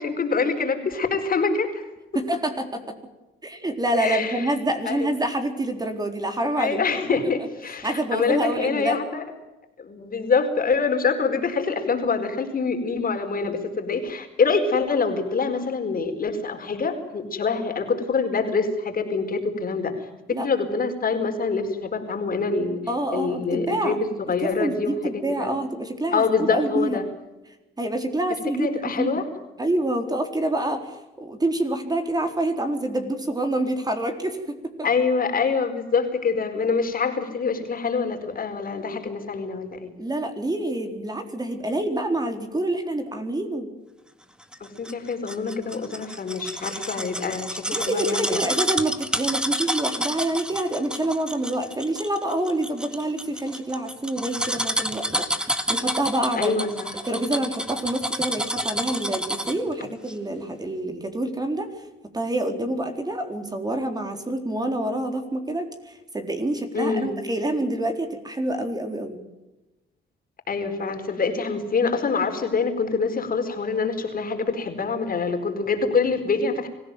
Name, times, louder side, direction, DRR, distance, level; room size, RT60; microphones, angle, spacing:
voice 1, 0.0-1.9 4.0-4.5 4.8-5.1 6.6-9.2 9.8-22.8 23.1-25.5 26.1-27.0 28.6-29.3 34.8-39.9 44.6-48.4 56.3-57.0 66.7-67.2 70.5-76.7, left 4 dB, 45° left, 6 dB, 4.6 m, -25 dB
voice 2, 2.1-2.9 3.4-6.8 7.8-9.0 20.3-20.5 22.9-24.0 24.4-27.0 27.8-29.2 29.6-34.7 40.0-43.7 47.7-56.6 57.0-61.7 62.1-69.2, right 1 dB, 20° right, 5 dB, 4.1 m, -27 dB
sound 1, 44.5-59.7 60.1-60.2, equal, 5° right, 2.2 m, -29 dB
25.0 x 16.0 x 9.2 m, 1.0 s
cardioid pair, 90°, 20 cm